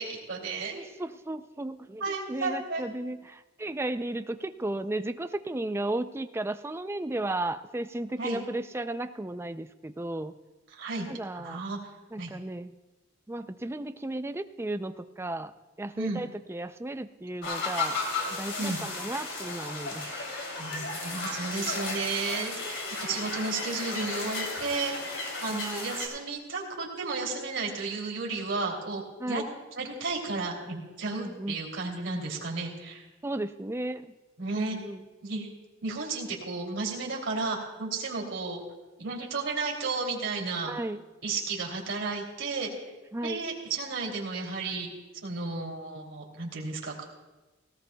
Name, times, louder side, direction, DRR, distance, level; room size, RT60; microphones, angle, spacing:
voice 1, 0.0-0.8 2.0-2.9 8.2-8.4 10.7-11.1 11.3-11.8 12.2-12.3 15.9-16.2 18.6-18.8 20.6-24.9 25.4-29.4 29.8-33.0 34.4-34.8 35.2-35.5 35.8-38.6 39.0-40.7 41.2-42.7 43.2-44.9 45.2-46.9, right 3 dB, 65° right, -2 dB, 2.9 m, -33 dB
voice 2, 0.7-2.0 2.3-10.4 11.1-11.6 12.1-12.7 13.3-15.5 15.8-18.0 18.3-20.2 25.4-25.9 29.2-29.5 31.1-31.6 33.2-34.1 34.7-35.0 40.7-41.0 43.1-43.4, right 1 dB, 15° right, 10 dB, 0.4 m, -34 dB
sound 1, 17.4-26.1, left 3 dB, 65° left, 3.1 m, -34 dB
18.0 x 18.0 x 2.3 m, 1.1 s
head